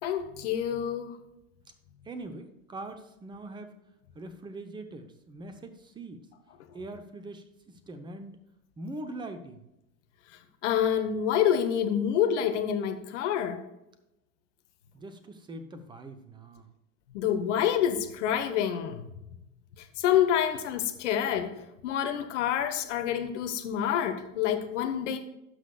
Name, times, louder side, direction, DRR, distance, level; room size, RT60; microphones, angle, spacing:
voice 1, 0.0-1.2 10.6-13.6 17.1-19.0 19.8-21.5 21.8-25.2, left 9 dB, 55° left, 1.2 m, -27 dB
voice 2, 2.0-3.8 4.1-6.3 6.7-8.4 8.8-9.7 14.9-16.7, right 2 dB, 10° right, 0.8 m, -42 dB
17.5 x 6.2 x 2.4 m
figure-of-eight pair, 85°, 43 cm